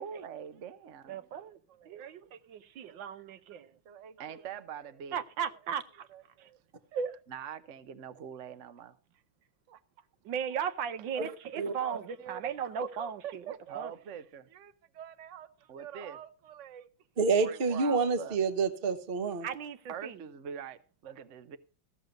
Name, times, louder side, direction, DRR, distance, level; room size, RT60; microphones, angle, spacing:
voice 1, 0.0-1.3 1.7-2.0 3.9-5.2 6.1-6.6 7.3-9.0 9.7-9.8 11.6-16.9 17.4-18.4 19.9-21.6, right 8 dB, 55° right, 0.9 m, -44 dB
voice 2, 1.1-1.6 1.8-3.7 5.1-6.1 6.4-6.5 6.9-7.2 10.2-13.9 19.4-20.2, right 7 dB, 75° right, 1.5 m, -37 dB
voice 3, 17.2-19.5, right 4 dB, 35° right, 1.1 m, -28 dB
15.0 x 6.6 x 6.5 m
omnidirectional pair, 2.1 m